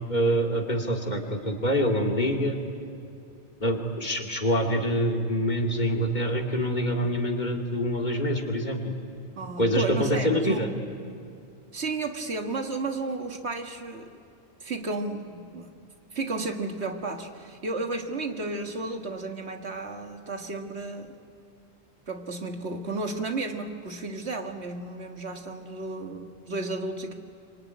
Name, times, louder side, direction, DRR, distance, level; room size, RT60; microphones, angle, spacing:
voice 1, 0.1-2.6 3.6-8.9 9.6-10.7, equal, 45° left, 2 dB, 2.6 m, -25 dB
voice 2, 9.4-10.7 11.7-14.2 14.6-15.7 16.1-21.2 22.1-27.1, right 3 dB, 85° right, 4 dB, 2.0 m, -33 dB
25.5 x 24.5 x 9.5 m, 2.4 s
omnidirectional pair, 1.1 m